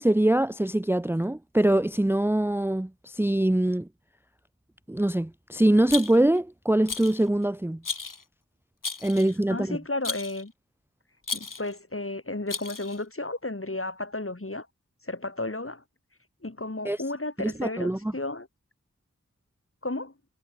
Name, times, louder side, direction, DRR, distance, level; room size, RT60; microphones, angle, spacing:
voice 1, 0.0-3.9 4.9-7.8 9.0-9.8 16.8-17.0 17.4-18.1, right 1 dB, 5° right, 0.6 m, -23 dB
Rattle, 5.9-6.4 6.9-7.2 7.8-8.2 8.8-9.4 10.0-10.4 11.2-11.7 12.5-13.0, left 4 dB, 90° left, 2.3 m, -34 dB
voice 2, 9.5-10.5 11.3-14.7 15.0-15.8 16.4-18.5 19.8-20.1, left 2 dB, 45° left, 5.9 m, -33 dB
wide cardioid pair, 55°, 31 cm